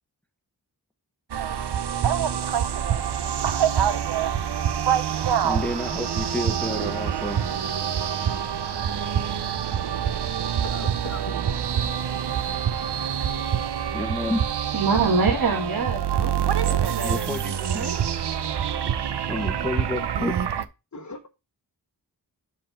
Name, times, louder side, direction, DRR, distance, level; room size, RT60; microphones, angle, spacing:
sound 1, 1.3-20.6, right 9 dB, 75° right, 0.6 m, -26 dB
voice 1, 5.4-7.4 13.9-14.5 17.0-17.9 19.3-20.4, left 1 dB, 5° left, 0.9 m, -30 dB
voice 2, 10.6-12.0 19.2-19.5 20.9-21.3, left 3 dB, 45° left, 1.0 m, -40 dB
voice 3, 14.7-17.3 17.7-18.0, right 4 dB, 60° right, 1.5 m, -26 dB
5.7 x 4.6 x 5.0 m
wide cardioid pair, 50°, 40 cm